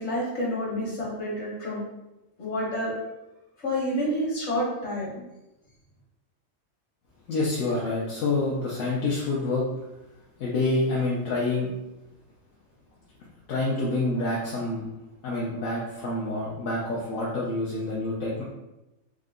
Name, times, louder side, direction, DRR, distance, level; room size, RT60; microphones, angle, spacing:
voice 1, 0.0-1.8 2.4-2.9 3.6-5.1, equal, 60° left, -5 dB, 1.5 m, -29 dB
voice 2, 7.3-9.6 10.4-11.7 13.5-14.9 15.2-18.4, left 2 dB, 75° left, -5 dB, 1.1 m, -27 dB
3.7 x 2.1 x 3.6 m, 0.98 s
omnidirectional pair, 1.4 m